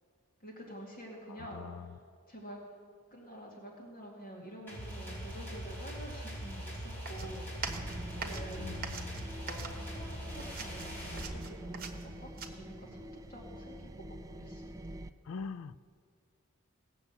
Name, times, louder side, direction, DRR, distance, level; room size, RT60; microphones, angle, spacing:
voice 1, 0.4-1.8 2.3-2.6 3.1-7.9 8.2-8.9 9.4-14.8, right 1 dB, 40° left, -3 dB, 2.4 m, -48 dB
voice 2, 1.3-1.9 8.6-9.2 15.2-15.7, left 5 dB, 70° left, 14 dB, 0.4 m, -43 dB
sound 1, 4.7-11.2, equal, 10° left, 3.8 m, -42 dB
sound 2, 7.1-10.1 10.4-12.5, right 5 dB, 45° right, 1.1 m, -43 dB
sound 3, 7.7-15.1, right 1 dB, 15° right, 0.4 m, -46 dB
17.5 x 6.9 x 8.3 m, 2.3 s
head